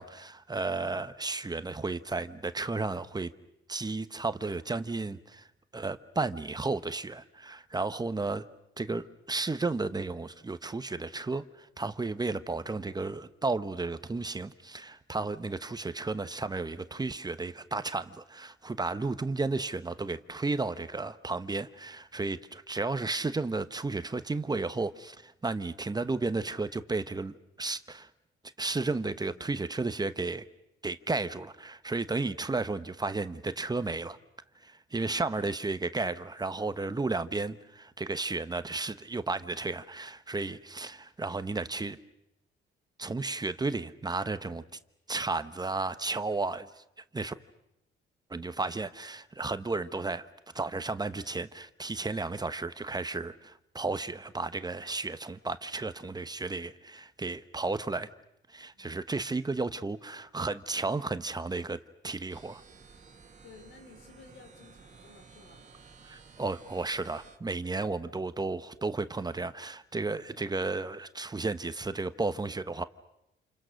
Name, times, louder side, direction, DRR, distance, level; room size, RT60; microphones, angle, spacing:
voice 1, 0.0-3.3 3.7-5.5 5.7-8.5 8.8-28.1 28.6-30.4 30.8-34.2 34.6-42.0 43.0-44.6 45.1-46.8 47.1-47.3 48.3-50.3 50.5-58.1 58.5-61.8 62.0-62.6 66.0-72.8, right 3 dB, 20° right, 1.0 m, -33 dB
sound 1, 62.3-67.4, right 5 dB, 35° right, 2.2 m, -54 dB
voice 2, 63.4-65.7, left 4 dB, 80° left, 5.0 m, -55 dB
28.5 x 28.5 x 6.4 m
cardioid pair, 90°, 20 cm